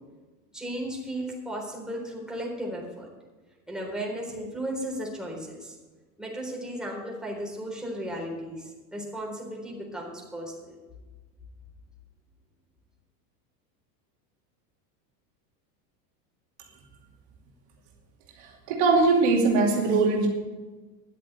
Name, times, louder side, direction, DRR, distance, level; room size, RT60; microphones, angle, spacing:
voice 1, 0.5-3.1 3.7-5.8 6.2-10.8, right 1 dB, ahead, -2 dB, 3.9 m, -35 dB
voice 2, 18.4-20.3, right 3 dB, 60° right, 0 dB, 2.7 m, -21 dB
11.0 x 7.8 x 8.1 m, 1.3 s
supercardioid pair, 100°, 47 cm